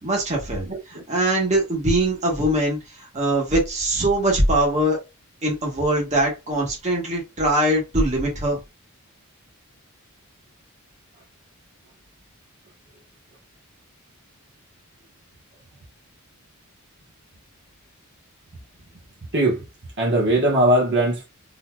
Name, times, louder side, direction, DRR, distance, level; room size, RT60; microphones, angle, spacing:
voice 1, 0.0-5.0 5.4-8.6, right 1 dB, 30° right, 1.4 m, -22 dB
voice 2, 0.6-1.0 19.3-19.6 20.0-21.3, right 1 dB, 50° right, 1.2 m, -20 dB
4.0 x 2.8 x 2.2 m
head